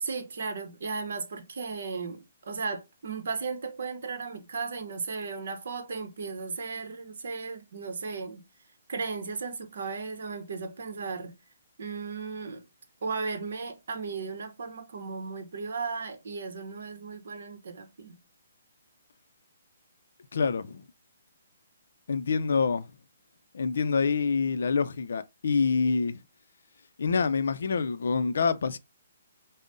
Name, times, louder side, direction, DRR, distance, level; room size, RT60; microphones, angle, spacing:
voice 1, 0.0-8.4 8.9-11.3 11.8-12.6 13.0-18.2, right 4 dB, 65° right, 0.8 m, -35 dB
voice 2, 20.3-20.8 22.1-22.9 23.5-26.2 27.0-28.8, left 5 dB, 70° left, 0.4 m, -26 dB
5.1 x 2.0 x 2.5 m
hypercardioid pair, 150°, 0 cm